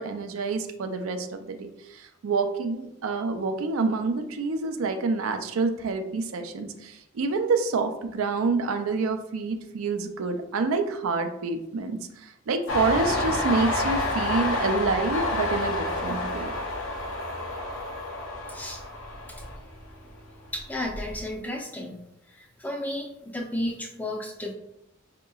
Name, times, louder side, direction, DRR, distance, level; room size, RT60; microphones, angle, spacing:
voice 1, 0.0-16.5, right 4 dB, 85° right, 6 dB, 0.4 m, -28 dB
Train, 12.7-20.1 20.5-21.3, left 2 dB, 75° left, 0.7 m, -29 dB
voice 2, 18.5-18.8 20.5-21.9 22.4-24.5, left 1 dB, 10° left, 1 dB, 0.4 m, -33 dB
4.7 x 2.9 x 2.3 m, 0.85 s
head